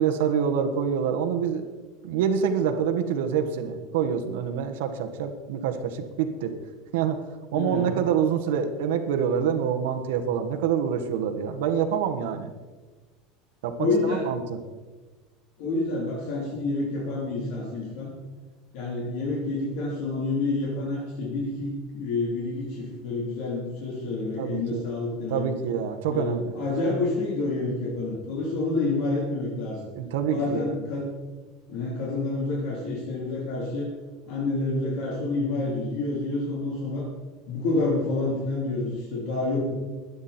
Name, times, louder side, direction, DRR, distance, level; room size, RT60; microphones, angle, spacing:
voice 1, 0.0-1.6 2.0-6.5 6.9-7.2 7.5-12.5 13.6-14.6 24.4-24.8 25.3-26.5 29.9-30.8, right 7 dB, 90° right, 5 dB, 1.4 m, -26 dB
voice 2, 7.5-7.9 13.8-14.3 15.6-18.1 18.7-25.5 26.1-29.9 30.3-31.1 31.7-33.9 34.3-37.1 37.5-39.7, left 2 dB, 55° left, -4 dB, 3.5 m, -28 dB
22.0 x 9.6 x 4.4 m, 1.3 s
cardioid pair, 180°, 0 cm